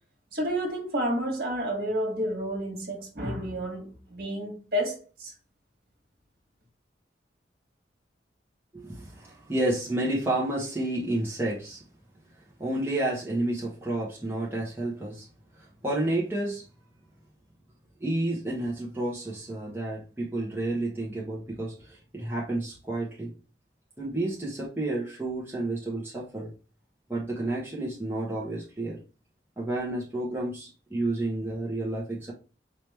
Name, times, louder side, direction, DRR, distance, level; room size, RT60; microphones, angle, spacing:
voice 1, 0.3-5.3, equal, 55° right, 1.7 m, -30 dB
voice 2, 8.7-11.8 12.6-15.3 15.6-16.6 18.0-23.3 24.0-26.5 27.1-29.0 29.6-32.3, right 1 dB, 10° right, 1.0 m, -30 dB
4.5 x 3.0 x 3.3 m
head